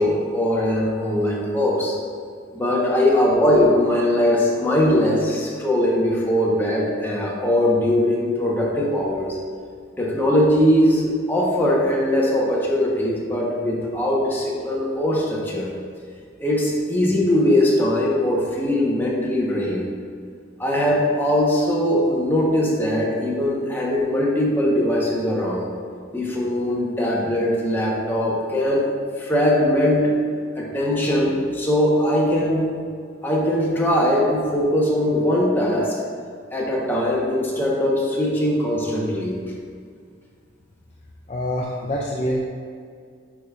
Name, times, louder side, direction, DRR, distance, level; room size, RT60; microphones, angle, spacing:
voice 1, 0.0-2.0 2.5-9.4 10.0-15.7 16.4-19.9 20.6-25.7 26.1-28.9 29.2-30.1 30.6-32.7 33.2-36.0 36.5-39.4, left 1 dB, 10° left, -4 dB, 0.9 m, -20 dB
voice 2, 41.3-42.4, left 1 dB, 30° left, -3 dB, 0.4 m, -25 dB
8.4 x 5.1 x 2.4 m, 2.1 s
head